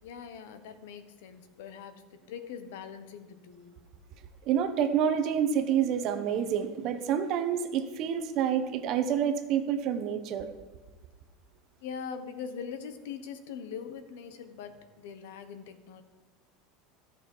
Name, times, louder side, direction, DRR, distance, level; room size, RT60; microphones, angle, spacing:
voice 1, 0.0-3.8 11.8-16.0, left 7 dB, 80° left, 10 dB, 1.1 m, -42 dB
voice 2, 4.5-10.5, right 8 dB, 40° right, 8 dB, 0.9 m, -28 dB
14.5 x 6.6 x 5.5 m, 1.3 s
supercardioid pair, 170°, 0 cm